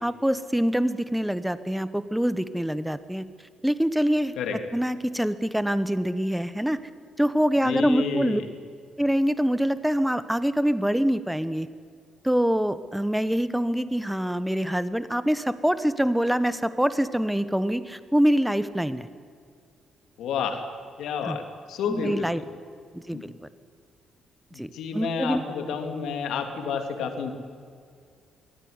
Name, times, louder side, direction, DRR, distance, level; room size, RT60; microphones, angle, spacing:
voice 1, 0.0-3.2 3.6-4.3 4.7-6.8 7.2-8.4 9.0-11.7 12.2-19.1 21.2-21.4 21.9-22.4 22.9-23.3 24.6-25.4, equal, 5° right, 13 dB, 1.2 m, -25 dB
voice 2, 7.6-8.5 20.2-20.6 21.0-21.4 21.7-22.2 23.1-23.3 24.5-27.3, left 6 dB, 80° left, 5 dB, 2.9 m, -30 dB
23.0 x 16.0 x 9.7 m, 2.2 s
cardioid pair, 90°, 0 cm